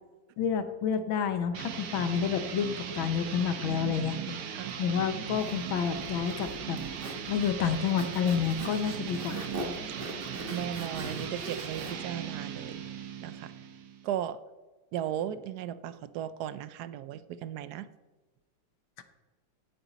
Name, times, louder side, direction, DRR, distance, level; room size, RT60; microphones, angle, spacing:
voice 1, 0.4-4.4 4.8-6.8 7.3-9.5 19.0-19.1, left 7 dB, 75° left, 9 dB, 1.7 m, -29 dB
sound 1, 1.5-14.1, right 8 dB, 55° right, 1.2 m, -38 dB
Zipper (clothing), 5.3-11.9, right 1 dB, 30° right, 1.6 m, -42 dB
voice 2, 10.5-12.8 13.2-13.5 14.0-14.4 14.9-17.9, right 10 dB, 75° right, 14 dB, 0.9 m, -36 dB
16.5 x 9.0 x 4.0 m, 1.2 s
omnidirectional pair, 2.2 m